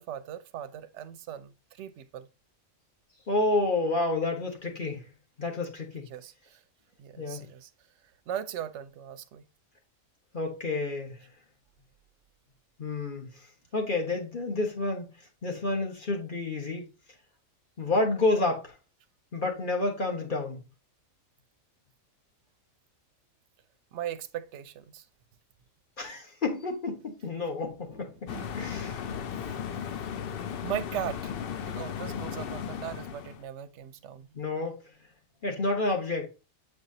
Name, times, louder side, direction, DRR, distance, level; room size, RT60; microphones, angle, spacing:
voice 1, 0.0-2.3 6.1-6.6 7.0-7.7 8.3-9.4 23.9-25.1 28.3-28.6 30.6-31.3 31.7-34.4, right 10 dB, 65° right, 0.8 m, -38 dB
voice 2, 3.3-5.0 5.4-6.1 7.2-7.5 10.3-11.2 12.8-13.3 13.7-15.1 15.4-16.9 17.8-18.7 19.3-20.6 26.0-29.0 34.3-34.8 35.4-36.3, left 2 dB, 40° left, 1.4 m, -29 dB
sound 1, 28.3-33.4, left 8 dB, 65° left, 0.6 m, -36 dB
7.8 x 4.3 x 2.8 m
omnidirectional pair, 1.4 m